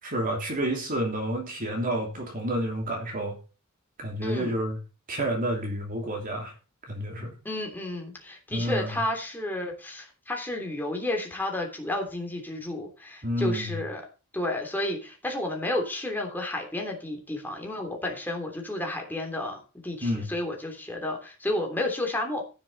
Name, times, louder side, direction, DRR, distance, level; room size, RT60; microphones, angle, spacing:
voice 1, 0.0-3.4 4.0-4.8 5.1-6.5 6.9-7.3 8.5-9.0 13.2-13.8 20.0-20.3, right 1 dB, 40° right, 1 dB, 3.0 m, -29 dB
voice 2, 7.4-14.0 14.3-22.4, left 1 dB, 10° left, 1 dB, 3.2 m, -31 dB
15.0 x 7.4 x 4.1 m, 0.33 s
head